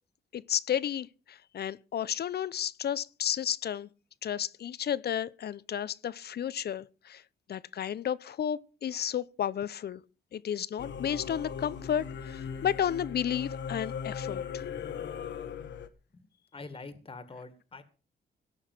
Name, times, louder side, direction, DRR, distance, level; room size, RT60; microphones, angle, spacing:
voice 1, 0.3-3.9 4.2-7.2 7.5-10.0 10.3-14.6, left 9 dB, 60° left, 0.8 m, -32 dB
Singing / Musical instrument, 10.8-15.9, left 7 dB, 80° left, 1.6 m, -38 dB
voice 2, 16.5-17.8, left 3 dB, 30° left, 2.0 m, -45 dB
17.5 x 6.5 x 7.6 m
cardioid pair, 115°, 19 cm